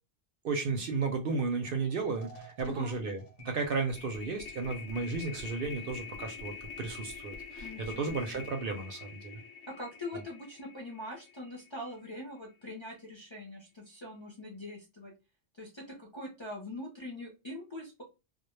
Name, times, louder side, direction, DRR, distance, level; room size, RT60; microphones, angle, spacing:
voice 1, 0.4-9.4, right 4 dB, 60° right, 4 dB, 0.7 m, -34 dB
sound 1, 1.6-1.8 2.1-12.4, left 4 dB, 85° left, 1.0 m, -46 dB
voice 2, 2.6-3.0 7.6-8.4 9.7-15.1 15.6-18.0, left 1 dB, 35° left, -3 dB, 0.5 m, -43 dB
2.1 x 2.1 x 3.0 m, 0.28 s
omnidirectional pair, 1.2 m